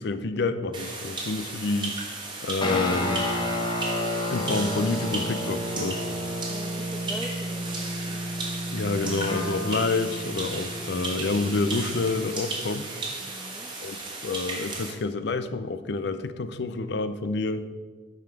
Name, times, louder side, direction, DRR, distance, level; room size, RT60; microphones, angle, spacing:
voice 1, 0.0-2.0 2.4-3.3 4.3-6.0 8.7-12.9 13.8-14.0 14.2-17.7, left 3 dB, 60° left, 12 dB, 0.5 m, -28 dB
sound 1, 0.7-14.9, right 3 dB, 25° right, 1.3 m, -35 dB
sound 2, 2.6-12.3, left 1 dB, 25° left, 0.8 m, -32 dB
voice 2, 6.5-8.2 13.2-13.7, equal, ahead, 2 dB, 0.3 m, -42 dB
8.6 x 5.9 x 4.5 m, 1.5 s
head